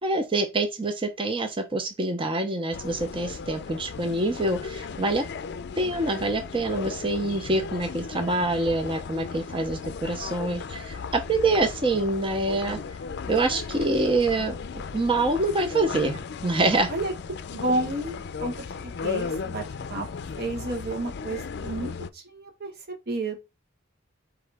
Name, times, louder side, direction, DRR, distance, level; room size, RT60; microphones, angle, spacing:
voice 1, 0.0-5.2 5.8-12.8 13.3-14.5 14.9-16.9, right 2 dB, 25° right, 0.6 m, -26 dB
sound 1, 2.7-22.1, left 5 dB, 60° left, 0.4 m, -36 dB
voice 2, 17.5-19.6 19.9-20.1 20.4-22.7 23.1-23.4, right 2 dB, 55° right, 1.2 m, -31 dB
4.8 x 3.1 x 3.4 m
head